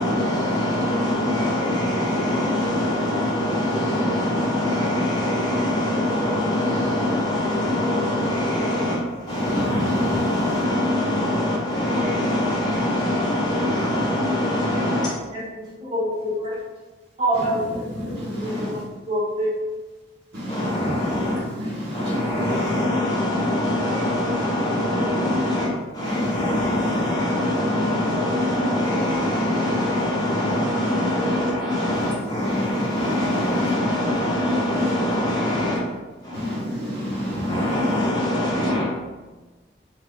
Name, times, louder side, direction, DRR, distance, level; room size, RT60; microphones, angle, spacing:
voice 1, 0.0-15.1 18.3-18.7 20.5-21.4 21.9-35.8 36.2-36.6 37.1-38.8, left 1 dB, 20° left, 0.9 m, -23 dB
voice 2, 9.3-10.6 17.3-18.8 20.3-22.8 26.0-27.1 31.9-33.7 34.7-34.9 36.3-38.1, equal, 65° right, 0.9 m, -30 dB
voice 3, 15.3-16.6 17.2-18.1 18.4-19.6 36.3-36.4, equal, 35° right, 0.6 m, -26 dB
2.6 x 2.4 x 3.4 m
head